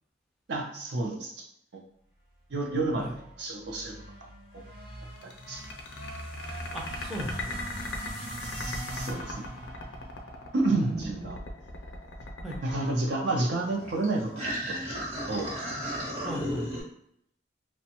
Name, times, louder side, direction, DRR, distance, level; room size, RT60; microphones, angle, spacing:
voice 1, 0.5-1.4 1.7-1.8 2.5-3.1 3.4-3.9 5.5-5.6 8.4-9.4 10.5-11.4 12.6-14.9 15.3-15.5, right 2 dB, 65° right, 1 dB, 0.5 m, -30 dB
sound 1, 2.8-11.1, right 1 dB, 90° right, 1.2 m, -42 dB
sound 2, 5.2-13.8, left 2 dB, 75° left, 0.5 m, -39 dB
voice 2, 6.7-7.6 10.7-11.3 12.4-12.6 16.2-16.7, equal, ahead, -4 dB, 0.4 m, -37 dB
sound 3, 13.7-16.8, equal, 35° right, 0.8 m, -34 dB
2.5 x 2.1 x 2.8 m, 0.72 s
head